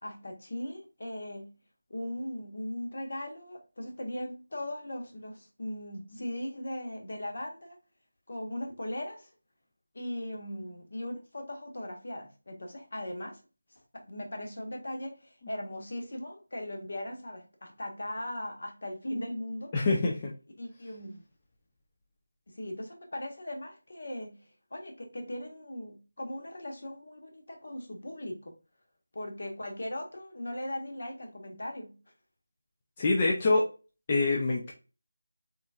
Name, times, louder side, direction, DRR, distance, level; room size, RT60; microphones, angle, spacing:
voice 1, 0.0-1.5 1.9-7.8 8.3-9.3 9.9-13.4 13.7-19.7 20.6-21.2 22.5-28.5 29.1-32.0, left 1 dB, 50° left, 1.2 m, -39 dB
voice 2, 19.7-20.3 33.0-33.7 34.1-34.7, left 3 dB, 15° left, 0.4 m, -25 dB
4.0 x 3.4 x 2.4 m
figure-of-eight pair, 180°, 0 cm